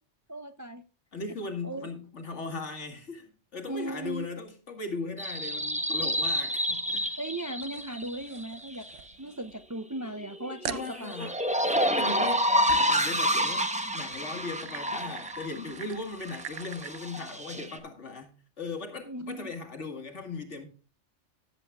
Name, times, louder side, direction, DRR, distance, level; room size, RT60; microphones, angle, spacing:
voice 1, 0.3-0.8 1.6-1.9 3.7-4.3 7.2-8.9 9.2-11.1 19.0-19.5, right 1 dB, 30° right, 0.3 m, -37 dB
voice 2, 1.1-7.2 10.6-11.4 11.6-13.7 13.9-20.7, left 3 dB, 70° left, 2.4 m, -38 dB
sound 1, 5.2-9.0 10.0-15.7 16.1-17.8, equal, 5° right, 0.9 m, -29 dB
sound 2, 7.6-9.7 10.1-10.2 10.6-10.9 12.7-13.0 13.8-17.1, right 9 dB, 90° right, 1.1 m, -43 dB
18.5 x 7.9 x 2.3 m
omnidirectional pair, 1.3 m